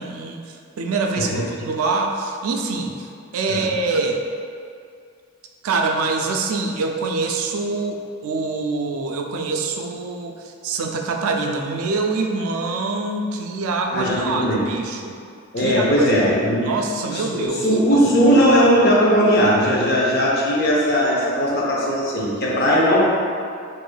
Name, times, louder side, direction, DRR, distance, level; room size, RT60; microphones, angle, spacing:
voice 1, 0.0-3.1 3.3-4.2 5.6-15.2 15.6-16.1 16.6-17.7 17.9-18.3, right 3 dB, 80° right, 3 dB, 0.3 m, -25 dB
voice 2, 13.9-14.6 15.5-16.6 17.1-23.0, equal, 45° left, -4 dB, 0.6 m, -18 dB
4.6 x 2.5 x 2.2 m, 2.3 s
head